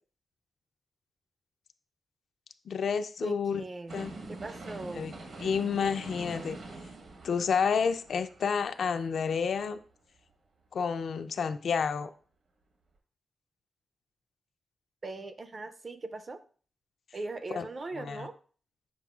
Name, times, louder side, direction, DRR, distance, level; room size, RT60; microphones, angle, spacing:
voice 1, 2.7-3.6 3.9-4.1 5.0-5.1 5.4-6.6 7.2-9.8 10.7-12.1 17.5-17.7 18.0-18.3, left 6 dB, 65° left, 9 dB, 0.4 m, -30 dB
voice 2, 3.2-5.1 15.0-16.4 17.1-18.4, right 2 dB, 30° right, 10 dB, 0.4 m, -40 dB
sound 1, 3.9-9.9 10.3-10.4, right 2 dB, 65° right, 1.0 m, -45 dB
7.4 x 5.4 x 2.4 m, 0.42 s
wide cardioid pair, 175°, 0 cm